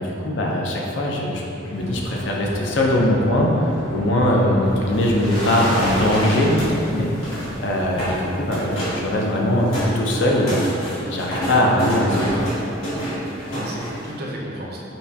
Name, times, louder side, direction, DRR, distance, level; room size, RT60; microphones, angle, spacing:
voice 1, 0.0-10.6 11.1-12.4, left 1 dB, 65° left, -2 dB, 0.5 m, -21 dB
sound 1, 1.7-9.2, equal, 25° left, 0.7 m, -33 dB
sound 2, 4.9-6.8 7.0-7.5 7.9-8.2 8.5-9.0 9.4-14.1, equal, 85° left, 1.3 m, -28 dB
voice 2, 13.3-14.8, right 1 dB, 50° right, -3 dB, 0.5 m, -34 dB
5.4 x 2.2 x 2.7 m, 2.8 s
head